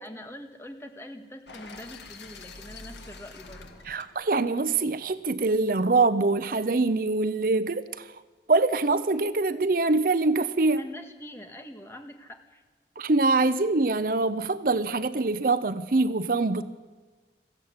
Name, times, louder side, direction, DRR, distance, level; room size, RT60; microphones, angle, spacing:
voice 1, 0.0-3.8 10.7-12.6, left 1 dB, 15° left, 1.8 m, -44 dB
sound 1, 1.5-5.5, left 3 dB, 80° left, 2.1 m, -47 dB
voice 2, 3.9-8.1 8.5-10.8 13.0-16.6, right 3 dB, 50° right, 0.7 m, -24 dB
22.0 x 15.0 x 9.6 m
head